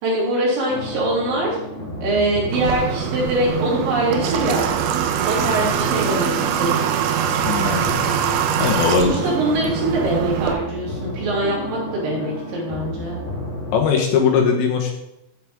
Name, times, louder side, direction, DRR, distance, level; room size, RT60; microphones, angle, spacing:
voice 1, 0.0-1.6 2.0-4.7 5.2-6.3 6.6-6.9 9.0-13.2, right 1 dB, 70° right, -6 dB, 5.4 m, -23 dB
sound 1, 0.7-13.8, left 1 dB, 50° left, 1.3 m, -32 dB
Water / Water tap faucet, 2.5-10.5, right 9 dB, 90° right, 3.3 m, -23 dB
voice 2, 7.4-7.9 8.6-9.1 13.7-14.9, left 6 dB, 75° left, 2 dB, 3.2 m, -19 dB
14.5 x 5.7 x 3.7 m, 0.86 s
omnidirectional pair, 5.6 m